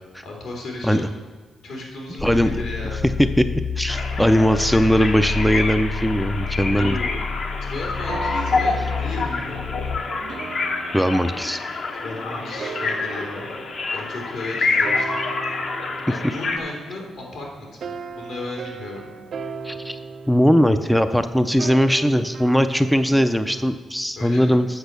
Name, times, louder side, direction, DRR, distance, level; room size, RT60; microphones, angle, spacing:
voice 1, 0.2-1.0 1.6-3.1 6.7-7.3 7.6-9.8 12.0-13.5 13.9-15.2 16.1-19.1 24.1-24.6, left 2 dB, 80° left, -1 dB, 3.0 m, -34 dB
sound 1, 2.2-10.0, left 5 dB, 30° left, 0.9 m, -29 dB
voice 2, 2.2-2.6 3.4-3.5 3.8-7.0 10.9-11.6 19.6-20.0 20.3-24.7, equal, ahead, 9 dB, 0.4 m, -19 dB
sound 2, 3.9-16.6, left 3 dB, 55° left, 1.0 m, -27 dB
sound 3, 7.6-17.3 17.8-23.8, right 5 dB, 55° right, 0.5 m, -38 dB
8.1 x 6.2 x 6.7 m, 1.3 s
cardioid pair, 100°, 0 cm